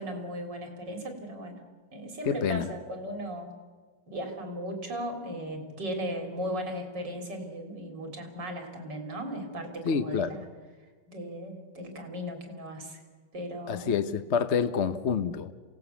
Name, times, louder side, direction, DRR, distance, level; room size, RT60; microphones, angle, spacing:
voice 1, 0.0-1.7 1.9-3.5 4.1-10.4 11.1-13.0 13.3-13.9, equal, 85° right, 4 dB, 4.2 m, -37 dB
voice 2, 2.3-2.7 9.8-10.4 13.7-15.5, left 6 dB, 50° left, 10 dB, 1.0 m, -27 dB
27.5 x 18.0 x 7.1 m, 1.5 s
omnidirectional pair, 1.9 m